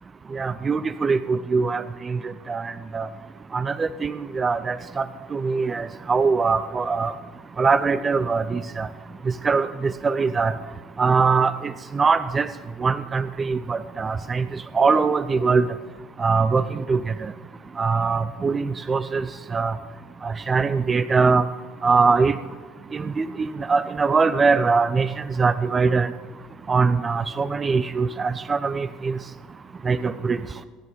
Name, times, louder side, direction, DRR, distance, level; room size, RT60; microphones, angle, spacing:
voice 1, 0.3-3.1 3.5-5.0 5.3-7.1 7.6-8.9 9.4-10.5 11.0-12.5 12.8-15.7 16.2-17.3 17.8-19.3 19.5-19.8 20.2-21.5 21.8-22.4 22.9-25.1 25.4-26.1 26.7-29.2 29.8-30.4, right 4 dB, 25° right, 15 dB, 0.5 m, -22 dB
23.5 x 9.5 x 4.0 m, 1.5 s
figure-of-eight pair, 70°, 0 cm